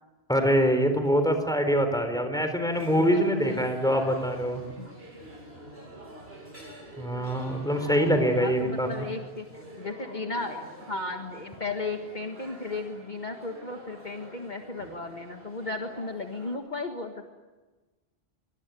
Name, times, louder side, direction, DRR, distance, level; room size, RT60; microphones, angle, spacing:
voice 1, 0.3-4.6 7.0-8.9, equal, 5° left, 7 dB, 3.9 m, -24 dB
sound 1, 2.7-16.6, right 1 dB, 70° right, 8.0 m, -46 dB
voice 2, 2.9-3.7 4.8-4.9 8.4-10.6 10.9-17.3, left 3 dB, 45° left, 3 dB, 1.8 m, -35 dB
25.0 x 23.5 x 9.3 m, 1.2 s
omnidirectional pair, 1.1 m